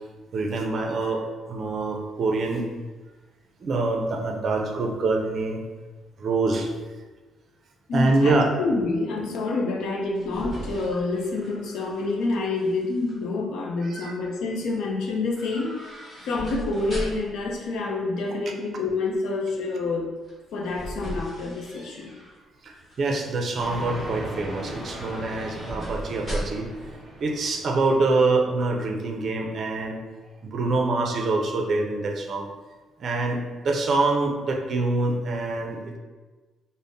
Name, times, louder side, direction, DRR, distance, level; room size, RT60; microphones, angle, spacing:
voice 1, 0.3-2.7 3.6-5.6 6.2-6.7 7.9-8.5 13.8-14.1 22.6-26.7 27.2-30.0 30.4-32.5 33.0-36.0, right 3 dB, 45° right, 3 dB, 0.5 m, -25 dB
voice 2, 7.9-16.0 16.2-20.1 20.5-22.1, left 3 dB, 80° left, 0 dB, 0.6 m, -27 dB
sound 1, 9.9-12.2 12.6-13.1 15.3-17.4 20.2-22.4 22.8-23.3 24.7-26.8 27.1-27.2, right 1 dB, 5° left, 1.4 m, -37 dB
sound 2, 23.6-28.1, right 1 dB, 15° right, 1.1 m, -38 dB
5.1 x 2.0 x 2.6 m, 1.3 s
cardioid pair, 145°, 0 cm